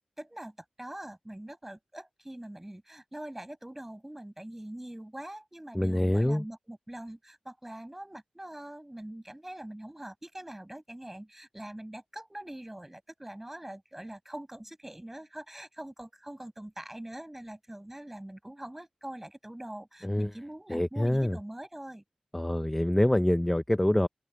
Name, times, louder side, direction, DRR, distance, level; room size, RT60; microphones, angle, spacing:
voice 1, 0.2-22.0, right 1 dB, 10° right, 7.7 m, -43 dB
voice 2, 5.7-6.4 20.0-20.3 20.7-21.4 22.3-24.1, left 1 dB, 10° left, 0.6 m, -25 dB
open air
wide cardioid pair, 100°, 2 cm